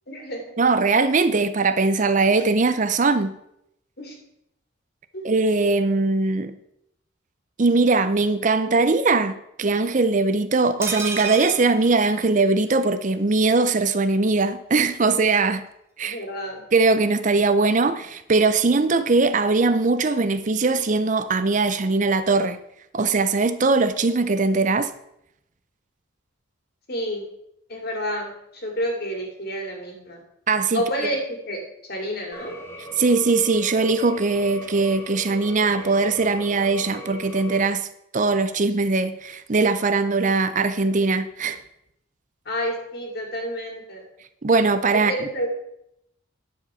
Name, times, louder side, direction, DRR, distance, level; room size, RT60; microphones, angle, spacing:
voice 1, 0.1-0.4 4.0-4.2 5.1-5.3 16.0-16.6 26.9-27.2 27.7-30.2 30.7-31.6 31.9-32.6 42.5-44.0 44.9-45.5, equal, 50° left, 2.5 m, -29 dB
voice 2, 0.6-3.4 5.2-6.6 7.6-15.7 16.0-16.2 16.7-22.6 22.9-24.9 30.5-30.8 33.0-37.9 38.1-41.6 44.4-45.3, right 3 dB, 40° right, 0.6 m, -20 dB
sound 1, 10.8-12.8 13.1-13.2 13.4-13.6, right 4 dB, 15° right, 1.1 m, -32 dB
sound 2, 32.3-37.7, right 1 dB, 10° left, 1.2 m, -39 dB
11.0 x 4.8 x 6.8 m
head